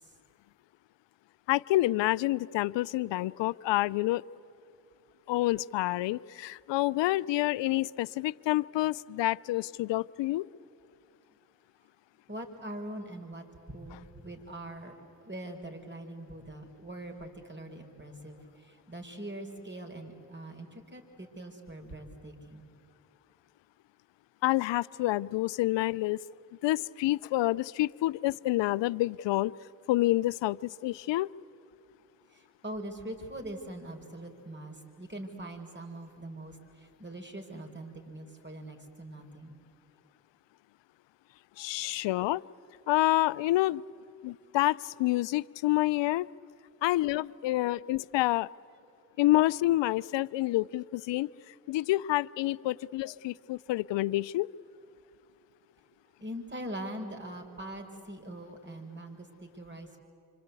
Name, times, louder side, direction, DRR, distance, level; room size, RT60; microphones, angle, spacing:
voice 1, 1.5-4.2 5.3-10.5 24.4-26.2 26.6-29.5 29.9-31.3 41.6-42.4 42.9-43.8 44.2-46.3 46.8-48.5 49.2-51.3 51.7-54.5, left 17 dB, 70° left, 22 dB, 0.6 m, -28 dB
voice 2, 12.3-14.9 15.2-22.7 32.3-39.6 41.8-41.9 56.2-60.0, right 1 dB, 25° right, 4 dB, 5.0 m, -42 dB
26.0 x 26.0 x 8.3 m, 2.7 s
hypercardioid pair, 40°, 46 cm